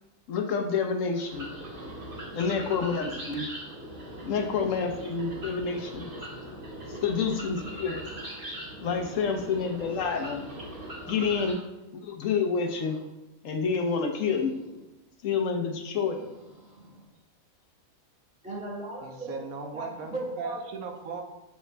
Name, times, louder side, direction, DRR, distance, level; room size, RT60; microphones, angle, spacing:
voice 1, 0.3-1.5 2.3-3.5 4.2-6.1 7.0-8.0 8.8-10.4 11.1-11.6 11.9-13.0 13.4-14.6 15.2-16.3, left 5 dB, 70° left, 4 dB, 1.1 m, -28 dB
voice 2, 1.2-1.9 3.2-3.8 5.7-6.6 7.8-8.4 10.1-10.6 11.3-11.5 12.6-13.0 16.5-17.0 18.4-19.4 19.7-20.7, right 1 dB, 5° right, -5 dB, 1.7 m, -41 dB
sound 1, 1.3-11.5, equal, 40° right, 1.8 m, -40 dB
voice 3, 19.0-21.2, right 5 dB, 85° right, 4 dB, 1.3 m, -38 dB
7.4 x 5.7 x 2.2 m, 1.0 s
omnidirectional pair, 1.5 m